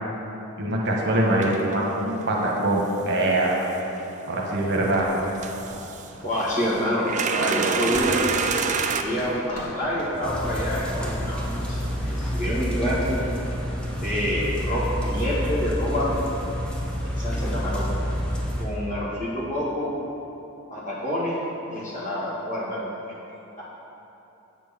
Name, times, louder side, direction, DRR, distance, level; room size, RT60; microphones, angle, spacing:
voice 1, 0.6-3.6 4.3-5.1, right 1 dB, 55° right, -2 dB, 1.3 m, -23 dB
sound 1, 0.9-1.0 1.4-4.7 5.4-6.1 6.5-9.0, right 5 dB, 35° right, 0.4 m, -29 dB
sound 2, 4.4-13.2, equal, 75° left, 2.1 m, -42 dB
voice 2, 6.2-8.2 8.9-11.8 12.0-13.2 14.0-16.2 17.0-17.9 18.6-19.9 20.7-21.4 21.7-22.9 23.6-23.7, equal, 35° left, -8 dB, 1.9 m, -27 dB
sound 3, 10.2-18.6, equal, 5° left, 0.9 m, -28 dB
8.8 x 4.6 x 7.1 m, 2.9 s
head